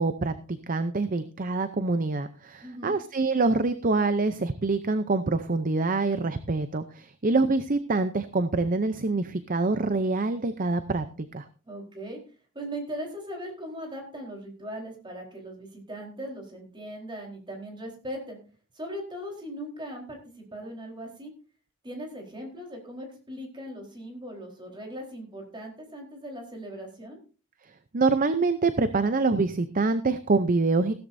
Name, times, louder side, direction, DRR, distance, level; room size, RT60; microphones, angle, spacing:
voice 1, 0.0-11.4 27.9-30.9, right 3 dB, 40° right, 11 dB, 0.6 m, -25 dB
voice 2, 2.6-3.0 11.6-12.2 12.5-18.4 18.7-21.3 21.8-27.2, equal, 20° right, 1 dB, 4.1 m, -39 dB
16.0 x 13.0 x 2.7 m, 0.37 s
head